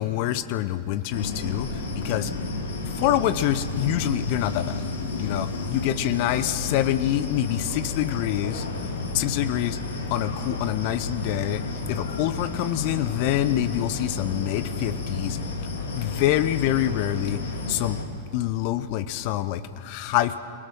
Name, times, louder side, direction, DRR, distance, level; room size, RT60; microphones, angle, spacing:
voice 1, 0.0-1.7 1.9-2.3 3.0-4.7 5.2-8.6 9.1-9.8 10.1-11.6 11.9-15.4 16.0-17.4 17.7-18.0 18.3-20.3, left 13 dB, 45° left, 12 dB, 0.9 m, -26 dB
sound 1, 1.1-18.0, left 3 dB, 65° left, 3.3 m, -32 dB
29.5 x 17.5 x 6.3 m, 2.3 s
figure-of-eight pair, 90°, 0 cm